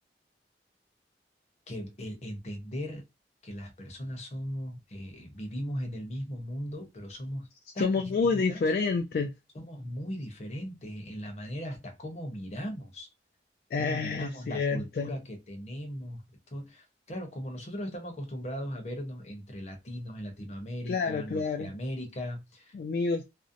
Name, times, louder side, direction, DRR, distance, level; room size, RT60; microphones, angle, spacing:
voice 1, 1.7-3.0 3.4-7.5 7.7-8.6 9.5-13.1 13.8-22.7, equal, 40° left, 0.7 m, -38 dB
voice 2, 7.8-9.3 13.7-15.1 20.9-21.7 22.7-23.3, left 4 dB, 55° left, 0.3 m, -28 dB
2.5 x 2.0 x 2.5 m
head